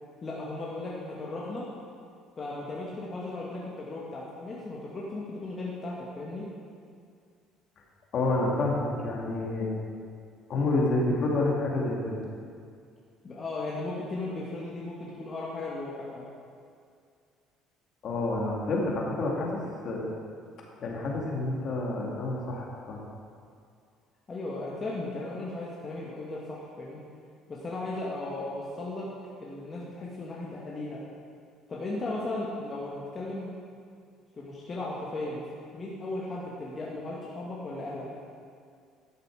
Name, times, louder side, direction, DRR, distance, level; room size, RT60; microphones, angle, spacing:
voice 1, 0.2-1.7 2.4-6.5 13.2-16.3 24.3-27.0 27.5-29.1 29.4-31.0 31.7-33.5 34.4-35.4 35.7-38.1, left 2 dB, 35° left, -5 dB, 1.8 m, -36 dB
voice 2, 8.1-9.7 10.5-12.2 18.0-20.0 20.8-23.0, left 2 dB, 55° left, -2 dB, 2.5 m, -28 dB
12.0 x 6.7 x 4.9 m, 2.2 s
supercardioid pair, 80°, 0 cm